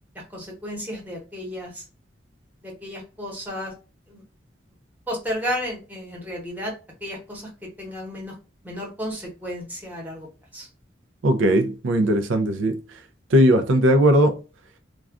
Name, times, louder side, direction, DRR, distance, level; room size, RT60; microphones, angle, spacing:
voice 1, 0.1-1.9 2.6-3.7 4.1-4.2 5.1-6.7 7.0-8.3 8.6-10.7, equal, 10° right, 1.0 m, -33 dB
voice 2, 11.2-12.8 13.3-14.4, equal, 85° right, 0.4 m, -18 dB
2.4 x 2.2 x 3.5 m
head